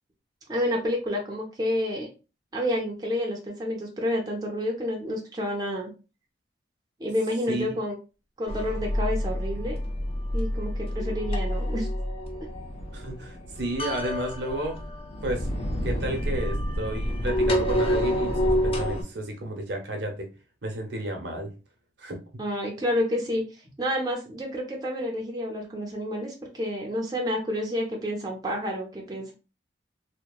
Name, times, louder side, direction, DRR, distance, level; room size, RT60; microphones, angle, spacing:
voice 1, 0.5-2.1 2.5-5.9 7.0-8.0 8.4-9.8 10.3-11.9 22.4-23.4 23.8-29.3, equal, 20° right, -1 dB, 0.5 m, -29 dB
sound 1, 8.5-19.0, equal, 30° left, 0.4 m, -28 dB
voice 2, 12.9-14.8 15.2-15.5 15.8-20.3 20.6-21.5 22.0-22.2, right 1 dB, 70° right, 3 dB, 0.7 m, -32 dB
2.8 x 2.1 x 2.2 m, 0.31 s
head